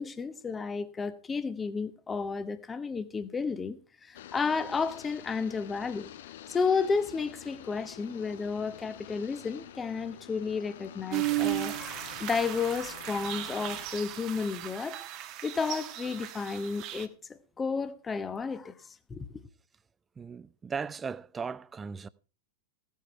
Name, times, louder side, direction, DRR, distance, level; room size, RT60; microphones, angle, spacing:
voice 1, 0.0-6.1 6.5-18.7 19.1-19.4, left 5 dB, 15° left, 1.0 m, -32 dB
sound 1, 4.1-13.9, left 11 dB, 60° left, 0.8 m, -48 dB
sound 2, 11.1-17.1, right 16 dB, 40° right, 1.3 m, -35 dB
voice 2, 20.2-22.1, right 5 dB, 20° right, 0.6 m, -37 dB
16.0 x 9.3 x 4.5 m
figure-of-eight pair, 90°, 0 cm